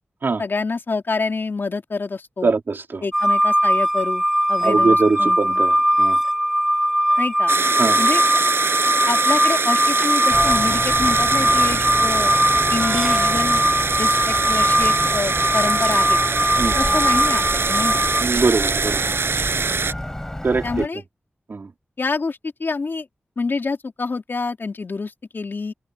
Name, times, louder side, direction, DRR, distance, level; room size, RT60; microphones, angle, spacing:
voice 1, 0.4-2.5 3.0-5.6 7.2-7.5 8.0-8.2 9.1-12.3 12.7-13.6 14.0-16.2 16.8-18.1 20.6-21.0 22.0-23.1 23.4-25.7, left 4 dB, 60° left, 3.6 m, -27 dB
voice 2, 2.4-3.0 4.6-6.2 7.8-8.0 16.6-16.8 18.2-19.0 20.4-20.9 21.5-21.7, right 4 dB, 60° right, 3.0 m, -22 dB
sound 1, 3.1-18.2, equal, 5° right, 1.0 m, -20 dB
sound 2, 7.5-19.9, right 5 dB, 80° right, 5.8 m, -23 dB
Church bell, 10.3-20.9, left 1 dB, 10° left, 3.9 m, -30 dB
open air
wide cardioid pair, 95°, 4 cm